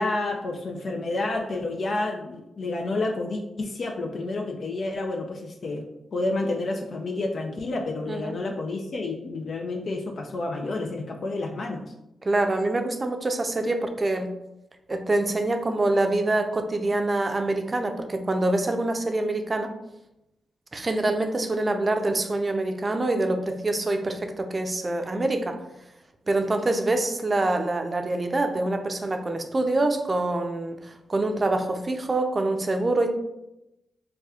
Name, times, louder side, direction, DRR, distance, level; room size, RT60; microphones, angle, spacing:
voice 1, 0.0-5.8 6.1-11.9, left 2 dB, 60° left, 2 dB, 0.4 m, -29 dB
voice 2, 12.2-14.3 14.9-19.7 20.7-25.6 26.3-33.1, right 2 dB, 40° right, 5 dB, 0.5 m, -25 dB
4.2 x 2.3 x 2.3 m, 0.90 s
supercardioid pair, 45°, 0 cm